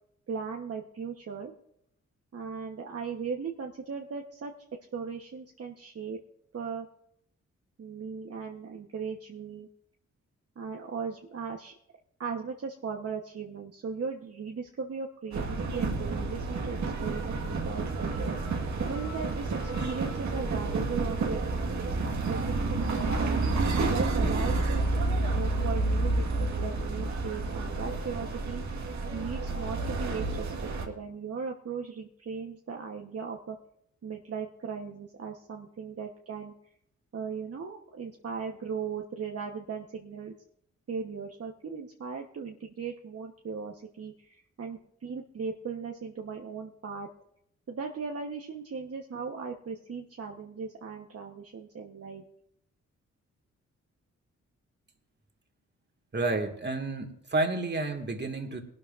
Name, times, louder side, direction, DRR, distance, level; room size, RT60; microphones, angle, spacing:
voice 1, 0.3-1.5 2.3-4.5 4.9-6.2 6.5-6.9 7.8-9.7 10.6-11.7 12.2-18.4 18.9-23.4 23.9-24.9 25.3-33.6 34.0-36.5 37.1-40.3 40.9-47.1 47.7-52.3, right 5 dB, 50° right, 1 dB, 1.2 m, -38 dB
sound 1, 15.3-30.9, right 3 dB, 70° right, 1.7 m, -30 dB
voice 2, 56.1-58.6, right 2 dB, 35° right, 3 dB, 2.1 m, -30 dB
20.0 x 12.5 x 2.6 m, 0.73 s
cardioid pair, 60°, 30 cm